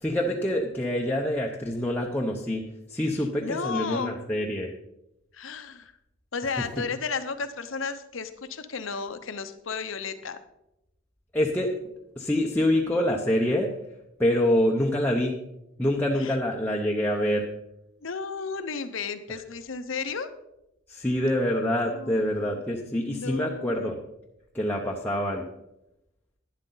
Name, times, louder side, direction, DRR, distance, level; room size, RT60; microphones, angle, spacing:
voice 1, 0.0-2.6 2.9-4.7 11.3-11.7 12.2-13.7 14.2-15.3 15.8-17.4 20.9-24.0 24.5-25.4, left 1 dB, 10° left, -1 dB, 0.8 m, -26 dB
voice 2, 3.4-4.2 5.3-5.9 6.3-10.4 16.2-16.4 18.0-20.3 21.8-22.2 23.1-23.9, left 5 dB, 75° left, 10 dB, 0.9 m, -33 dB
11.5 x 10.5 x 3.9 m, 0.88 s
head